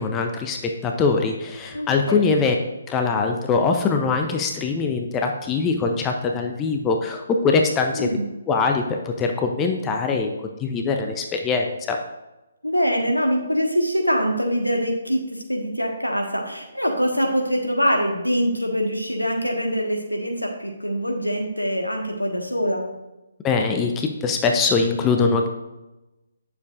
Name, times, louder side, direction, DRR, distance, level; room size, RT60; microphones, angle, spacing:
voice 1, 0.0-2.6 2.9-8.1 8.5-8.8 9.2-10.3 10.6-12.0 23.4-25.5, left 4 dB, 15° left, 3 dB, 0.6 m, -22 dB
voice 2, 1.7-2.3 7.9-8.3 12.6-22.8, equal, 90° left, 2 dB, 1.4 m, -24 dB
9.3 x 6.9 x 2.5 m, 1.0 s
figure-of-eight pair, 135°, 0 cm